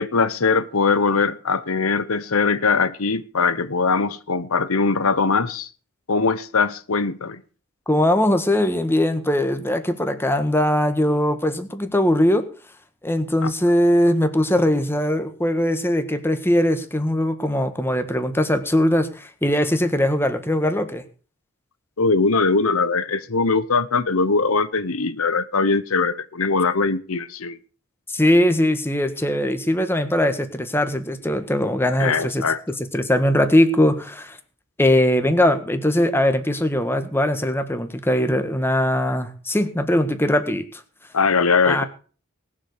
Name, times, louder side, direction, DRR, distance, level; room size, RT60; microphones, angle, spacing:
voice 1, 0.0-5.7 6.1-7.4 13.4-13.5 22.0-27.6 32.0-32.6 41.1-41.8, left 4 dB, 80° left, 1.0 m, -21 dB
voice 2, 7.9-12.4 13.0-21.0 28.1-32.4 32.9-34.4 34.8-40.6 41.7-41.9, left 1 dB, 10° left, 1.6 m, -20 dB
19.5 x 7.5 x 6.7 m
head